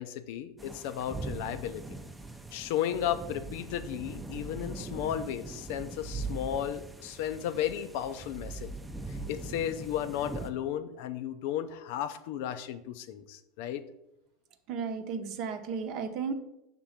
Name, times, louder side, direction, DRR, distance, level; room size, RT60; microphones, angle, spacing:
voice 1, 0.0-1.8 2.5-8.7 9.1-13.8, left 10 dB, 70° left, 11 dB, 0.5 m, -34 dB
sound 1, 0.6-10.5, right 3 dB, 5° right, 0.5 m, -41 dB
voice 2, 14.7-16.3, right 5 dB, 55° right, 7 dB, 0.8 m, -34 dB
5.9 x 3.8 x 5.7 m, 0.85 s
supercardioid pair, 120°, 0 cm